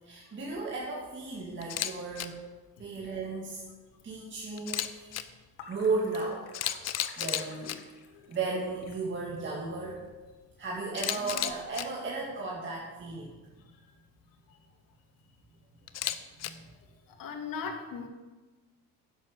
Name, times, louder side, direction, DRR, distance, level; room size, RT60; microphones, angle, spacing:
voice 1, 0.0-2.4 2.8-3.6 4.0-5.3 5.7-6.5 7.2-7.8 8.3-10.0 10.6-13.5 16.4-16.6, right 3 dB, 30° right, -3 dB, 2.1 m, -35 dB
Camera, 1.6-2.3 4.6-5.2 6.1-6.2 6.5-7.8 10.9-11.8 15.9-16.5, left 12 dB, 40° left, 0.8 m, -32 dB
sound 1, 3.0-11.7, left 6 dB, 75° left, 2.1 m, -54 dB
voice 2, 11.2-11.5 13.8-13.9 14.5-14.6 17.1-18.1, left 5 dB, 60° left, 4 dB, 2.3 m, -39 dB
11.0 x 7.6 x 6.9 m, 1.2 s
cardioid pair, 125°, 39 cm